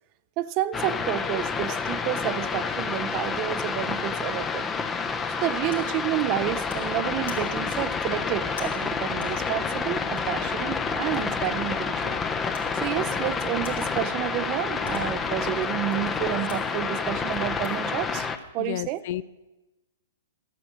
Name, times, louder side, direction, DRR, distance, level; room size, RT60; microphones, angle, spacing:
voice 1, 0.4-4.7 5.4-12.2 12.7-18.3 18.5-19.0, right 14 dB, 40° right, 14 dB, 0.5 m, -30 dB
sound 1, 0.7-18.4, left 5 dB, 15° left, 0.6 m, -29 dB
sound 2, 5.7-7.9 8.4-12.3 12.5-14.4 14.6-17.8, left 4 dB, 80° left, 2.3 m, -49 dB
voice 2, 18.6-19.2, left 13 dB, 55° left, 17 dB, 0.4 m, -31 dB
12.0 x 7.9 x 6.3 m, 1.1 s
hypercardioid pair, 125°, 0 cm